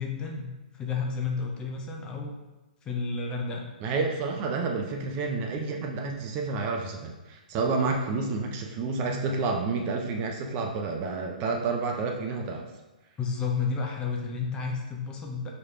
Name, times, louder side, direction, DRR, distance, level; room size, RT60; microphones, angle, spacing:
voice 1, 0.0-2.3 2.8-3.7 13.2-15.5, left 5 dB, 20° left, 1 dB, 0.7 m, -31 dB
voice 2, 3.8-12.6, right 4 dB, 30° right, 2 dB, 0.5 m, -29 dB
4.8 x 3.0 x 3.6 m, 1.1 s
figure-of-eight pair, 120°, 5 cm